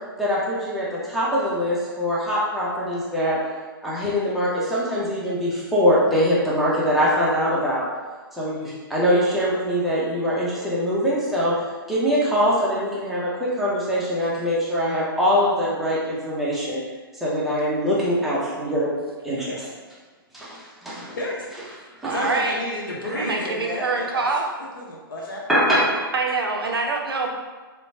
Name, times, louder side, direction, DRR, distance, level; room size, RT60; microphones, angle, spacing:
voice 1, 0.2-3.4 3.8-7.8 8.4-11.5 11.9-16.8 17.2-18.9 19.2-19.7 20.3-21.2 22.0-22.1 23.1-23.2 25.5-26.0, equal, ahead, -8 dB, 0.6 m, -23 dB
voice 2, 21.2-24.2 24.8-25.4, left 1 dB, 60° left, -3 dB, 0.8 m, -32 dB
voice 3, 22.0-22.6 23.1-24.5 26.1-27.3, right 3 dB, 75° right, 1 dB, 0.5 m, -25 dB
2.9 x 2.1 x 2.6 m, 1.3 s
figure-of-eight pair, 120°, 12 cm